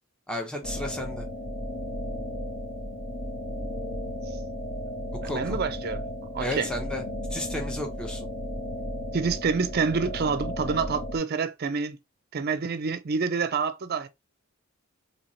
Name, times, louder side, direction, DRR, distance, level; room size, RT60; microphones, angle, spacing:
voice 1, 0.3-1.2 5.2-5.6 6.4-7.0 7.3-8.3, left 1 dB, 5° left, 0.7 m, -33 dB
sound 1, 0.6-11.2, equal, 40° left, 1.0 m, -34 dB
voice 2, 5.2-6.0 6.3-6.7 9.1-12.0 12.3-14.1, right 5 dB, 45° right, 0.4 m, -27 dB
4.4 x 2.8 x 2.8 m
head